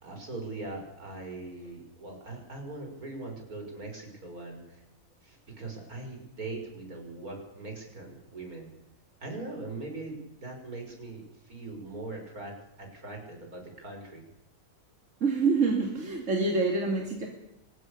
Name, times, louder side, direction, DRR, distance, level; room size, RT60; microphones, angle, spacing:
voice 1, 0.0-4.8 5.2-8.7 9.2-14.2, right 2 dB, 80° right, 2 dB, 6.5 m, -41 dB
voice 2, 15.2-17.3, right 4 dB, 55° right, 1 dB, 3.2 m, -26 dB
24.5 x 20.5 x 6.9 m, 0.89 s
omnidirectional pair, 1.5 m